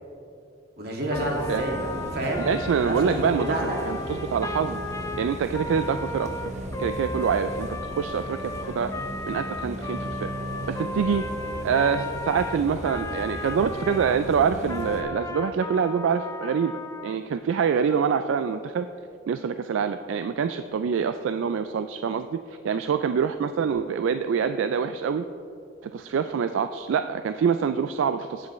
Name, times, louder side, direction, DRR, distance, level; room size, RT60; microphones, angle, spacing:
voice 1, 0.8-2.5 2.8-3.6, right 1 dB, 55° right, -1 dB, 1.9 m, -29 dB
Trumpet, 1.1-14.2 14.6-17.2, left 2 dB, 15° left, 0.4 m, -36 dB
Bus, 1.1-15.0, right 1 dB, 40° right, 1.0 m, -36 dB
voice 2, 2.4-4.8 5.2-6.3 6.8-7.7 7.9-8.9 9.3-10.3 10.7-11.2 11.6-16.7 17.0-18.9 19.3-25.2 25.8-28.5, right 6 dB, 75° right, 10 dB, 0.3 m, -25 dB
16.5 x 7.6 x 3.1 m, 2.6 s
head